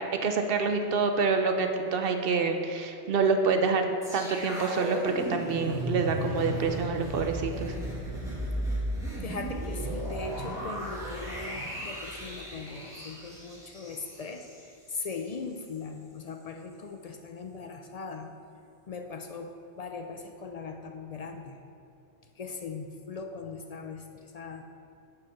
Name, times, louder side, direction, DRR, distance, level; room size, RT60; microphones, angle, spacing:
voice 1, 0.0-3.9 4.1-7.7, right 4 dB, 60° right, 5 dB, 0.8 m, -27 dB
sound 1, 4.0-15.2 15.5-15.7, right 1 dB, 5° right, 1.7 m, -35 dB
voice 2, 9.2-18.3 18.9-21.6 22.4-24.6, left 4 dB, 60° left, 5 dB, 0.4 m, -40 dB
7.0 x 5.2 x 5.8 m, 2.6 s
omnidirectional pair, 1.1 m